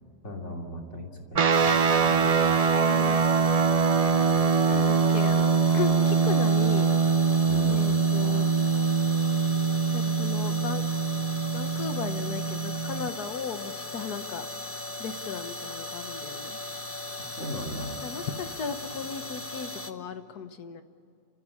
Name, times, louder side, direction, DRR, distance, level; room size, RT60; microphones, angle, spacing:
voice 1, 0.2-2.5 7.4-7.8 17.4-18.0, equal, 45° left, 1 dB, 3.2 m, -37 dB
sound 1, 1.3-13.1, right 5 dB, 45° right, 0.4 m, -23 dB
sound 2, 1.5-19.9, left 2 dB, 10° left, 0.8 m, -38 dB
voice 2, 2.7-3.2 4.7-6.9 7.7-8.5 9.9-10.8 11.5-14.5 15.0-16.6 18.0-20.8, left 6 dB, 75° left, 9 dB, 1.8 m, -36 dB
29.5 x 15.0 x 9.9 m, 2.5 s
omnidirectional pair, 1.7 m